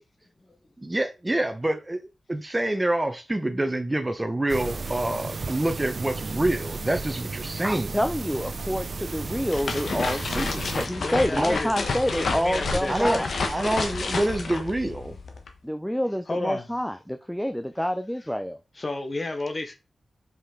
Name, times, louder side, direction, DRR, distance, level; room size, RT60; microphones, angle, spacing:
voice 1, 0.8-2.0 2.3-7.9 11.4-11.6 12.9-13.2 13.5-15.2, right 1 dB, 20° right, 1.0 m, -26 dB
sound 1, 4.5-10.9, right 3 dB, 55° right, 0.6 m, -34 dB
voice 2, 7.6-13.3 15.6-18.6, equal, 5° left, 0.5 m, -28 dB
sound 2, 9.2-15.5, left 3 dB, 70° left, 1.3 m, -30 dB
voice 3, 11.0-11.7 12.0-13.3 16.3-16.7 18.7-19.8, left 2 dB, 40° left, 1.1 m, -32 dB
5.4 x 5.2 x 3.8 m
cardioid pair, 60°, 0 cm